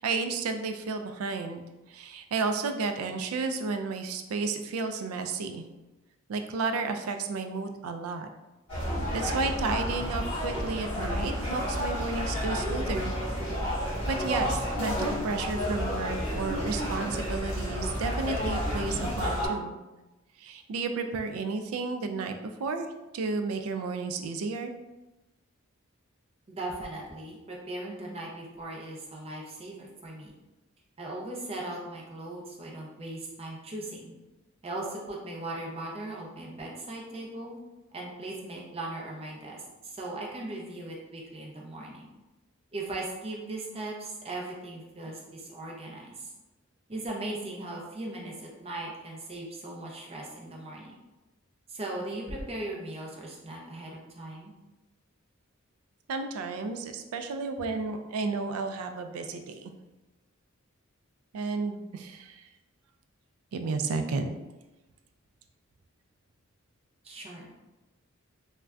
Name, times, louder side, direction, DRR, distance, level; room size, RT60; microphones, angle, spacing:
voice 1, 0.0-5.7 6.3-8.3 9.1-13.1 14.1-19.7 20.4-22.9 23.1-24.7 56.1-59.7 61.3-62.5 63.5-64.3, right 4 dB, 80° right, 6 dB, 0.3 m, -32 dB
sound 1, 8.7-19.5, equal, 25° left, 1.1 m, -31 dB
voice 2, 26.5-30.3 31.0-34.1 34.6-37.6 37.9-42.1 42.7-46.3 46.9-50.9 51.7-54.5 67.0-67.5, right 2 dB, 30° right, -2 dB, 0.5 m, -38 dB
2.5 x 2.2 x 3.3 m, 1.1 s
head